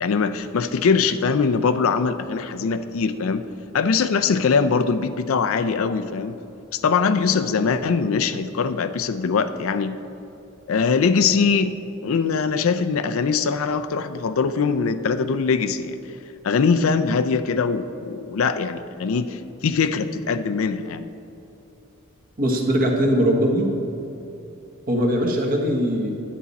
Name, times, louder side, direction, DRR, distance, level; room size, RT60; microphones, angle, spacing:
voice 1, 0.0-3.5 3.7-6.4 6.7-10.0 10.7-11.7 12.0-16.0 16.4-21.1, left 5 dB, 70° left, 10 dB, 0.4 m, -22 dB
voice 2, 22.4-23.7 24.9-26.2, equal, 45° right, 1 dB, 1.3 m, -20 dB
10.5 x 8.3 x 4.1 m, 2.9 s
head